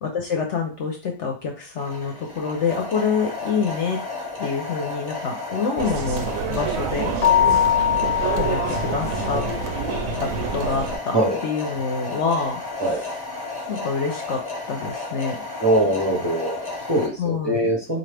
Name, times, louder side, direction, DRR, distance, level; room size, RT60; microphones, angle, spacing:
voice 1, 0.0-4.0 4.4-7.1 8.4-9.5 10.2-11.2 11.4-13.2 13.7-14.4 14.7-15.4 17.2-17.7, left 5 dB, 60° left, 2 dB, 0.8 m, -26 dB
sound 1, 1.8-17.1, left 3 dB, 15° left, 0.9 m, -33 dB
sound 2, 5.8-11.0, right 5 dB, 70° right, 0.7 m, -28 dB
Keyboard (musical), 7.2-9.7, left 10 dB, 85° left, 0.5 m, -22 dB
voice 2, 15.6-18.0, right 1 dB, 35° right, -2 dB, 0.4 m, -22 dB
4.0 x 2.7 x 3.3 m, 0.34 s
omnidirectional pair, 1.7 m